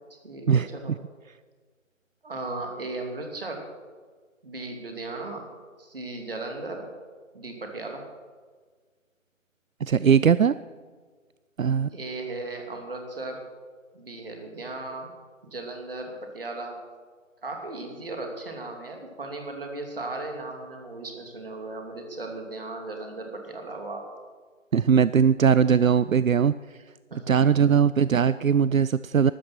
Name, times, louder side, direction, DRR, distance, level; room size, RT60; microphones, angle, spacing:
voice 1, 0.2-0.9 2.2-3.6 4.4-5.5 5.8-6.9 7.3-8.0 11.9-13.4 13.9-15.1 15.4-16.8 17.4-24.1 27.1-27.6, right 2 dB, 45° right, 3 dB, 3.0 m, -36 dB
voice 2, 9.8-10.6 11.6-11.9 24.7-26.5 27.3-29.3, right 7 dB, 80° right, 16 dB, 0.5 m, -20 dB
14.0 x 13.0 x 6.0 m, 1.5 s
figure-of-eight pair, 155°, 40 cm